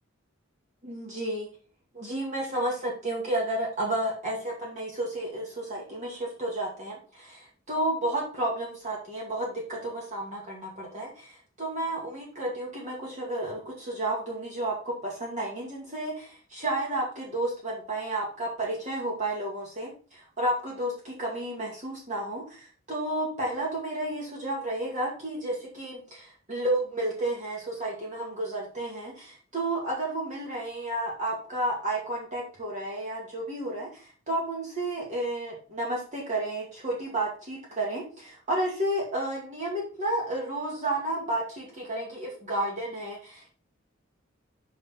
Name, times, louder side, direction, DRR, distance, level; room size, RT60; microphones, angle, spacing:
voice 1, 0.8-1.5 1.9-43.5, right 1 dB, 35° right, -3 dB, 2.1 m, -32 dB
6.3 x 5.8 x 4.5 m, 0.37 s
head